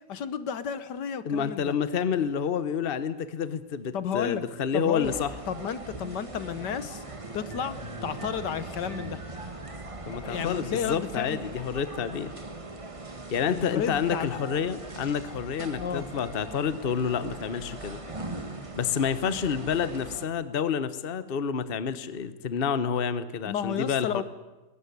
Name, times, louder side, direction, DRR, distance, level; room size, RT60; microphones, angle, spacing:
voice 1, 0.1-1.7 3.9-4.4 4.7-5.1 5.5-7.0 7.3-9.2 10.2-11.4 13.5-14.4 15.8-16.1 23.5-24.2, left 8 dB, 75° left, 14 dB, 1.6 m, -32 dB
voice 2, 1.2-5.3 10.1-12.3 13.3-18.0 18.8-24.2, left 7 dB, 35° left, 13 dB, 1.1 m, -29 dB
sound 1, 5.0-20.2, right 2 dB, 20° right, 1.6 m, -40 dB
21.0 x 18.5 x 9.7 m, 1.1 s
omnidirectional pair, 1.9 m